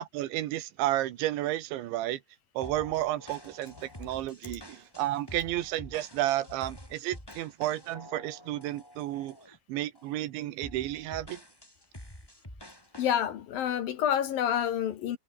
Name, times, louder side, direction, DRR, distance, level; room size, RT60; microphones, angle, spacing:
voice 1, 0.0-2.2 2.6-9.4 9.7-11.4, right 14 dB, 85° right, 3.6 m, -32 dB
sound 1, 2.6-9.6 9.9-10.2 10.6-13.2, equal, 5° left, 6.4 m, -48 dB
voice 2, 13.0-15.2, left 9 dB, 65° left, 2.8 m, -28 dB
omnidirectional pair, 5.3 m